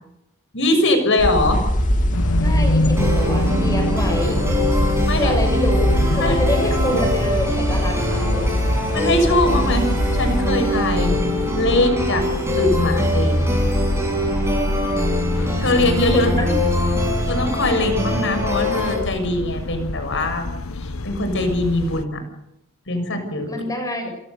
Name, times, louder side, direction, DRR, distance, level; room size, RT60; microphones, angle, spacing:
voice 1, 0.5-1.6 5.0-5.4 6.2-6.4 8.9-9.9 10.1-11.1 11.6-12.3 12.6-13.5 15.6-16.3 17.3-20.5 20.8-22.2 22.9-23.5, left 1 dB, 60° left, 7 dB, 6.5 m, -21 dB
sound 1, 1.2-10.4, equal, 35° left, 2.6 m, -22 dB
sound 2, 2.1-22.1, left 2 dB, 80° left, 1.0 m, -26 dB
voice 2, 2.4-4.4 5.2-8.5 16.1-16.6 23.5-24.1, left 1 dB, 15° left, 4 dB, 7.8 m, -26 dB
sound 3, 3.0-19.0, equal, 15° right, 8.0 m, -24 dB
29.0 x 17.5 x 6.9 m, 0.82 s
head